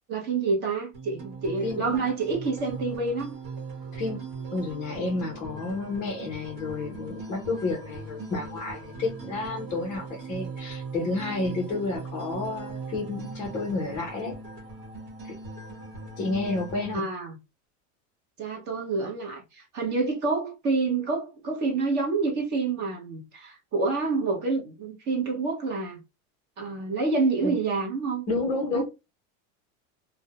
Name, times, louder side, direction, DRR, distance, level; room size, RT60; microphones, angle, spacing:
voice 1, 0.1-3.3 16.9-17.4 18.4-26.0 26.6-28.2 28.7-28.8, right 4 dB, 25° right, 0.7 m, -28 dB
sound 1, 0.9-16.9, right 4 dB, 55° right, 1.0 m, -40 dB
voice 2, 1.6-2.1 3.9-4.2 4.5-14.4 16.2-17.1 27.4-27.6 28.3-28.8, left 3 dB, 20° left, 0.5 m, -30 dB
2.3 x 2.0 x 2.8 m
supercardioid pair, 160°, 39 cm